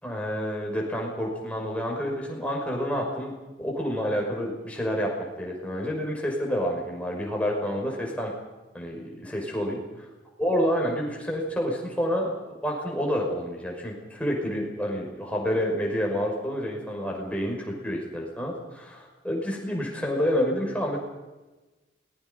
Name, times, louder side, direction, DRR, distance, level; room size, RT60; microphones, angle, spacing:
voice 1, 0.0-5.1 5.4-8.3 8.7-9.8 10.4-21.0, equal, 5° left, -1 dB, 5.9 m, -29 dB
28.0 x 21.0 x 5.5 m, 1.1 s
head